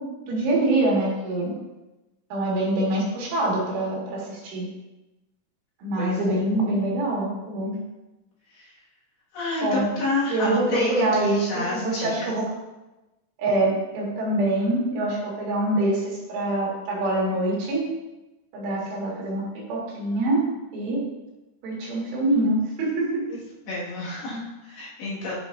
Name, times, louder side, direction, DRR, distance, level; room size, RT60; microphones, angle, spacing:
voice 1, 0.0-1.5 2.3-4.7 5.8-7.8 9.6-9.9 10.3-12.5 13.4-17.9 18.5-20.4 20.7-21.0 21.6-23.3 24.3-24.4, right 1 dB, 80° right, -4 dB, 4.4 m, -25 dB
voice 2, 6.0-6.3 8.5-8.7 9.3-12.1 23.3-23.4 23.7-25.4, left 2 dB, 60° left, -8 dB, 3.6 m, -29 dB
11.0 x 6.1 x 2.6 m, 1.0 s
omnidirectional pair, 5.5 m